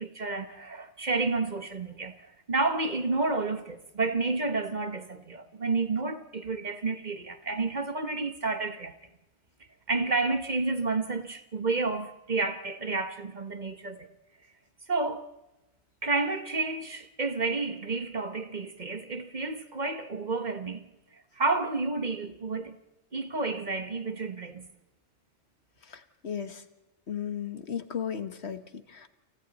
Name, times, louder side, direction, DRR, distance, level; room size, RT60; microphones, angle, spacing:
voice 1, 0.0-2.1 2.5-8.9 9.9-14.1 14.9-15.3 16.0-20.8 21.3-22.8 23.1-24.7, right 3 dB, 40° right, 1.4 m, -30 dB
voice 2, 25.9-26.6 27.1-29.1, left 8 dB, 70° left, 1.6 m, -35 dB
29.5 x 29.0 x 4.2 m
omnidirectional pair, 1.2 m